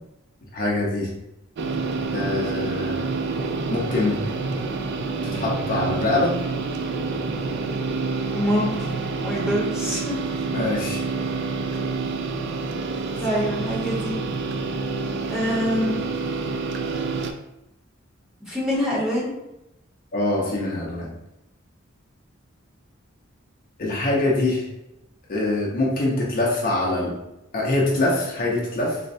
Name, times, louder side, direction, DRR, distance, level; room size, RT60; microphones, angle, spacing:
voice 1, 0.5-1.1 2.1-3.0 3.7-4.2 5.2-6.3 10.5-11.0 20.1-21.1 23.8-24.7 25.3-27.1 27.5-29.0, left 2 dB, 45° left, -4 dB, 0.6 m, -24 dB
sound 1, 1.6-17.3, right 4 dB, 60° right, 0.3 m, -28 dB
voice 2, 8.3-10.1 13.2-14.1 15.3-16.0 18.4-19.3, equal, 5° right, -7 dB, 0.9 m, -25 dB
3.9 x 2.1 x 2.6 m, 0.90 s
head